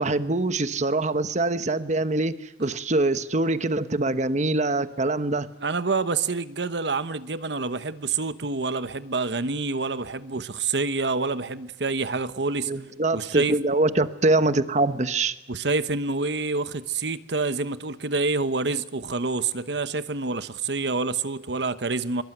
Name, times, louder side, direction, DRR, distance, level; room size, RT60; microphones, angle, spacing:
voice 1, 0.0-5.5 12.7-15.4, right 2 dB, 45° right, 1.1 m, -24 dB
voice 2, 5.6-12.7 13.1-13.6 15.5-22.2, right 3 dB, 75° right, 1.1 m, -27 dB
22.5 x 22.0 x 9.0 m
head